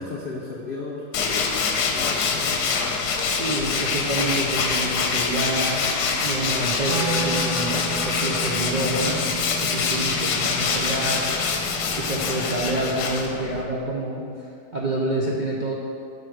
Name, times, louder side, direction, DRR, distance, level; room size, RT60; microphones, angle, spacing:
voice 1, 0.0-2.7, left 3 dB, 50° left, -3 dB, 0.7 m, -35 dB
Tools, 1.1-13.6, left 5 dB, 70° left, 1.3 m, -25 dB
voice 2, 3.3-5.9 6.2-11.7 12.0-15.7, right 1 dB, 50° right, -4 dB, 0.5 m, -28 dB
Wind instrument woodwind instrument, 6.8-12.9, right 3 dB, 85° right, 1.5 m, -34 dB
8.1 x 4.9 x 6.3 m, 2.4 s
omnidirectional pair, 1.8 m